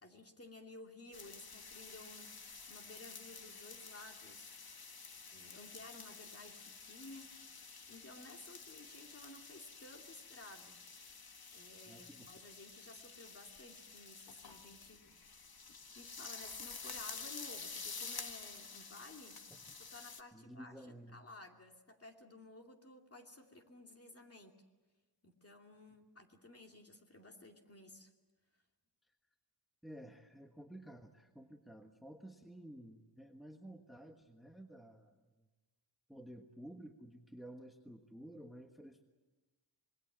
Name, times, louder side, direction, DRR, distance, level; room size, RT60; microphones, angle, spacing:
voice 1, 0.0-2.4 2.7-4.6 5.3-7.3 7.9-10.8 11.5-15.3 15.9-19.4 19.9-20.7 21.1-24.6 25.2-28.1, left 2 dB, 30° left, 2 dB, 2.6 m, -55 dB
sound 1, 1.1-20.2, left 5 dB, 55° left, 1.5 m, -50 dB
voice 2, 11.9-12.3 19.5-19.6 20.3-21.2 29.0-29.1 29.8-35.5 36.1-39.0, right 1 dB, ahead, 4 dB, 1.3 m, -53 dB
26.5 x 21.0 x 7.4 m, 1.2 s
wide cardioid pair, 110°, 44 cm